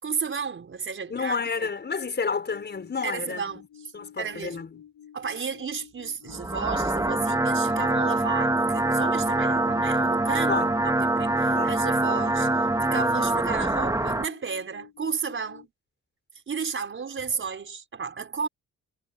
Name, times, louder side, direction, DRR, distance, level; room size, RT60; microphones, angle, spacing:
voice 1, 0.0-1.7 3.0-3.9 4.2-4.6 5.1-10.6 11.0-15.7 16.5-18.5, right 6 dB, 40° right, 5.1 m, -33 dB
voice 2, 1.1-3.7 3.9-4.7 10.5-10.7 11.5-11.8, left 5 dB, 35° left, 5.9 m, -30 dB
sound 1, 2.5-15.7, left 9 dB, 75° left, 5.3 m, -50 dB
sound 2, 6.3-14.3, right 2 dB, 10° right, 2.1 m, -24 dB
cardioid pair, 90°, 30 cm